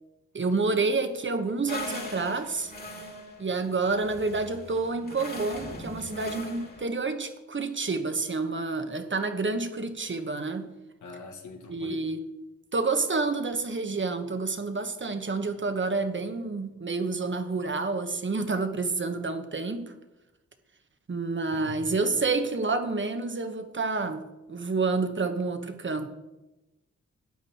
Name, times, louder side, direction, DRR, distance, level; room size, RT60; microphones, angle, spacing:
voice 1, 0.3-2.7 3.4-10.7 11.7-12.3 12.7-19.9 21.1-26.1, right 3 dB, 40° right, 8 dB, 1.2 m, -29 dB
sound 1, 1.7-6.8, left 2 dB, 30° left, 2.2 m, -40 dB
voice 2, 11.0-12.0 21.5-21.8, left 4 dB, 80° left, 2 dB, 1.7 m, -42 dB
12.0 x 7.9 x 4.3 m, 1.0 s
cardioid pair, 50°, 30 cm